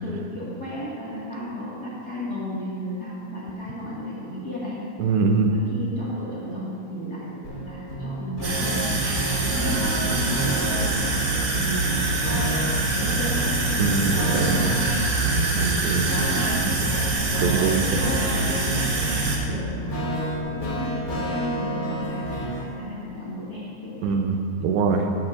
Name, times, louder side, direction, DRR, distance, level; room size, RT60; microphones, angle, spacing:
voice 1, 0.0-4.8 5.3-8.9 9.4-11.0 11.5-12.1 12.9-13.6 14.0-14.8 15.6-17.1 17.5-18.9 19.4-20.0 20.5-24.2, equal, 60° left, -8 dB, 1.0 m, -34 dB
voice 2, 5.0-5.5 13.8-14.8 15.2-16.0 17.4-17.8 24.0-25.1, right 5 dB, 80° right, 4 dB, 2.8 m, -23 dB
sound 1, 7.4-22.7, right 1 dB, 30° left, 1.4 m, -30 dB
sound 2, 8.4-19.4, right 2 dB, 60° right, 1.8 m, -25 dB
15.0 x 12.0 x 2.5 m, 2.5 s
omnidirectional pair, 5.1 m